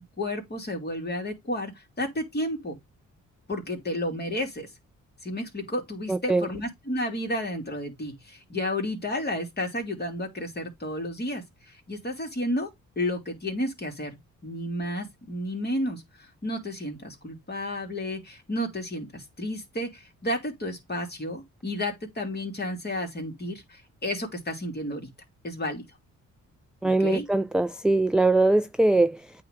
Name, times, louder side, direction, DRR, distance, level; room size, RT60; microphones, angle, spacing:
voice 1, 0.2-2.8 3.5-4.7 5.2-12.7 13.0-25.1 25.4-25.9 26.8-27.2, left 1 dB, 35° left, 2.6 m, -32 dB
voice 2, 6.1-6.5 26.8-29.3, right 2 dB, 5° right, 0.3 m, -22 dB
8.7 x 3.0 x 5.0 m
cardioid pair, 80°, 31 cm